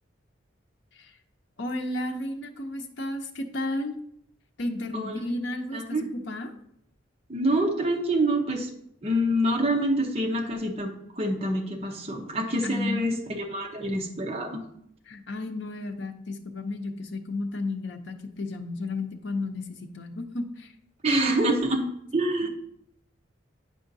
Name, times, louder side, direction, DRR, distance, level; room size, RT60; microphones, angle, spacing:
voice 1, 1.6-3.9 4.6-6.5 12.6-13.2 15.1-20.7 21.1-21.5 22.4-22.5, left 2 dB, 65° left, 5 dB, 0.7 m, -33 dB
voice 2, 4.9-5.3 5.7-6.0 7.3-8.7 9.0-14.6 21.0-21.8 22.1-22.5, right 1 dB, 30° right, 0 dB, 0.9 m, -26 dB
9.0 x 4.9 x 2.7 m, 0.72 s
head